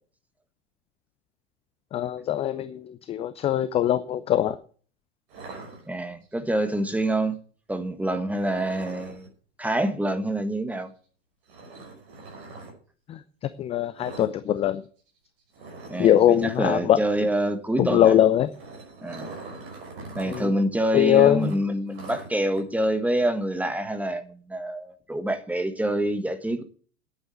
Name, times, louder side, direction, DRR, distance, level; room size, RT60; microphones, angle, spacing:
voice 1, 1.9-4.6 13.1-13.2 13.6-14.8 16.0-17.0 17.8-18.5 20.3-20.5 20.9-21.5, left 11 dB, 15° left, 0.5 m, -21 dB
sound 1, 5.3-6.3 8.3-9.3 11.5-12.7 14.0-14.3 14.6-14.8 15.1-15.2 15.5-16.7 18.2-20.5 20.8-20.9 21.4-22.6, right 3 dB, 50° right, 5.9 m, -42 dB
voice 2, 5.8-7.4 7.7-9.3 9.6-10.9 15.9-18.2 19.0-19.3 20.1-26.6, right 1 dB, 5° right, 1.5 m, -26 dB
10.0 x 8.9 x 7.9 m
figure-of-eight pair, 90°, 36 cm